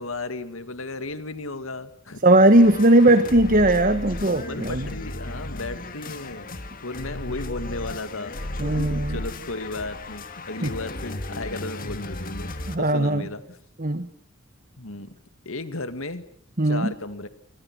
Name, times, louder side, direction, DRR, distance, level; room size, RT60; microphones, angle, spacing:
voice 1, 0.0-2.2 3.0-3.2 4.4-8.4 8.7-12.5 12.8-13.6 14.8-15.2 15.5-16.2 16.6-17.3, left 2 dB, 80° left, 10 dB, 2.2 m, -34 dB
voice 2, 2.2-4.9 8.6-9.2 10.6-10.7 12.7-13.3 13.8-14.1 16.6-16.9, right 1 dB, 40° right, 10 dB, 1.4 m, -18 dB
sound 1, 2.5-12.8, left 1 dB, 40° left, 2.2 m, -35 dB
29.0 x 24.0 x 6.2 m, 0.69 s
head